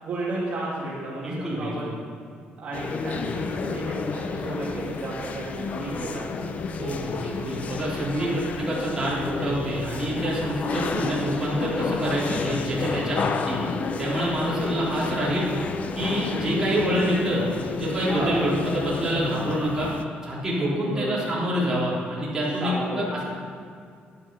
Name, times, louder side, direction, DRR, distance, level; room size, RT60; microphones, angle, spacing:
voice 1, 0.0-1.9 2.6-6.3 7.9-8.4 14.5-15.0 16.2-16.4 18.1-18.5 20.6-21.2 22.6-23.2, right 2 dB, 40° right, -7 dB, 2.3 m, -33 dB
voice 2, 1.2-1.9 6.8-13.6 14.0-15.5 15.9-19.9 20.2-23.2, right 1 dB, 15° right, -8 dB, 3.5 m, -27 dB
sound 1, 2.7-20.0, left 5 dB, 40° left, 0.6 m, -31 dB
11.0 x 10.0 x 5.5 m, 2.3 s
cardioid pair, 160°, 4 cm